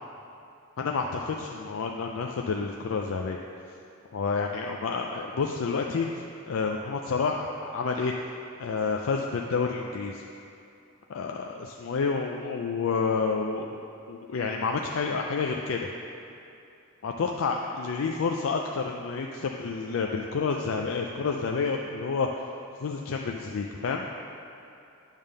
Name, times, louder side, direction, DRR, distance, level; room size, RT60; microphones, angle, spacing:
voice 1, 0.8-3.4 4.1-8.1 8.6-10.2 11.1-13.8 14.1-15.8 17.0-22.3 22.8-24.1, left 4 dB, 70° left, 1 dB, 0.4 m, -29 dB
9.0 x 3.5 x 6.5 m, 2.6 s
head